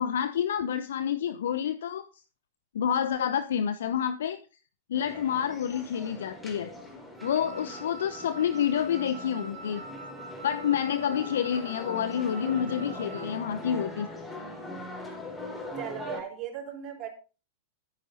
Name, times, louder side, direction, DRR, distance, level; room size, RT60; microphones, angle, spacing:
voice 1, 0.0-2.1 2.7-4.4 4.9-6.7 7.2-9.8 10.4-14.1, left 9 dB, 65° left, 0.9 m, -28 dB
sound 1, 4.9-16.2, left 1 dB, 10° left, 4.3 m, -41 dB
Wind instrument woodwind instrument, 7.2-13.4, right 2 dB, 10° right, 3.0 m, -45 dB
voice 2, 15.7-17.1, right 8 dB, 35° right, 4.9 m, -37 dB
14.0 x 9.4 x 4.0 m
figure-of-eight pair, 95°, 0 cm